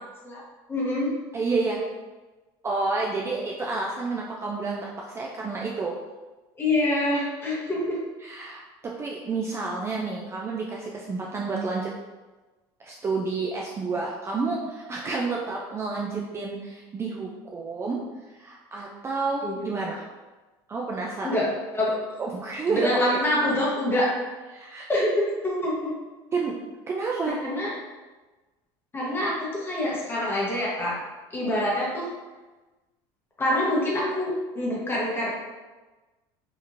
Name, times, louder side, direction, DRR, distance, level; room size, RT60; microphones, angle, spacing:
voice 1, 0.7-1.1 6.6-8.0 19.4-19.7 21.2-22.0 22.7-24.1 24.9-25.1 25.4-25.9 27.4-27.7 28.9-31.0 31.3-32.1 33.4-35.3, left 1 dB, 20° left, -5 dB, 1.0 m, -26 dB
voice 2, 1.3-1.8 2.6-5.9 8.2-8.6 9.0-11.9 12.8-18.0 18.4-20.0 20.7-21.4 22.2-23.2 24.5-24.9 26.3-26.5 26.9-27.4, right 3 dB, 25° right, -2 dB, 0.3 m, -29 dB
2.9 x 2.5 x 2.5 m, 1.2 s
supercardioid pair, 105°, 11 cm